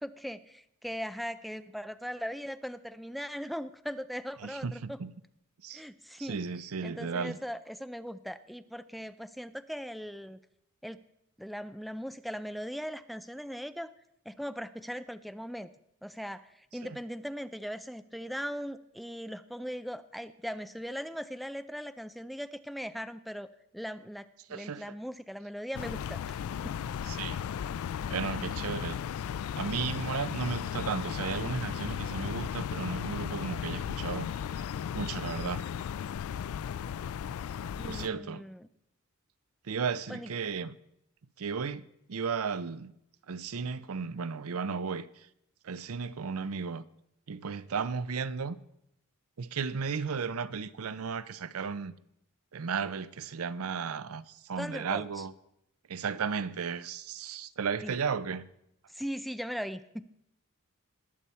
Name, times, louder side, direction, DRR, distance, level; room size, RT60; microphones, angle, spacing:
voice 1, 0.0-5.0 5.7-6.4 6.8-10.4 10.8-11.0 11.4-13.9 14.3-15.7 16.0-26.8 37.7-38.7 40.1-40.3 54.6-55.2 57.8-57.9 58.9-60.1, equal, ahead, 0.4 m, -39 dB
voice 2, 4.4-5.1 5.6-5.8 6.2-7.4 16.8-17.0 24.5-24.8 27.0-27.4 28.1-29.0 29.6-34.3 34.9-35.6 37.8-38.4 39.6-40.7 41.4-41.8 42.1-42.9 43.3-45.3 45.6-46.8 47.3-48.6 49.4-51.9 52.5-55.3 55.9-58.5, right 5 dB, 85° right, 0.6 m, -34 dB
sound 1, 25.7-38.1, left 8 dB, 75° left, 0.3 m, -35 dB
20.0 x 6.9 x 4.4 m
head